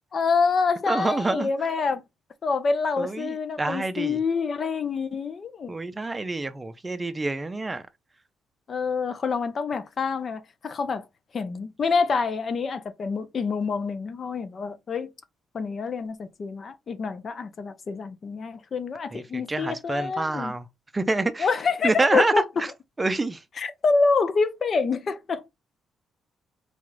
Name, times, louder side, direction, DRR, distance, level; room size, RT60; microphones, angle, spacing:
voice 1, 0.1-2.0 2.4-5.7 8.7-11.1 11.3-15.1 15.5-20.5 21.4-22.6 23.6-25.5, left 4 dB, 45° left, 0.7 m, -26 dB
voice 2, 0.9-1.5 3.0-4.2 5.7-7.8 19.1-20.6 20.9-21.5 21.8-22.3 23.0-23.4, right 2 dB, 20° right, 0.5 m, -27 dB
4.2 x 2.3 x 3.1 m
cardioid pair, 90°, 0 cm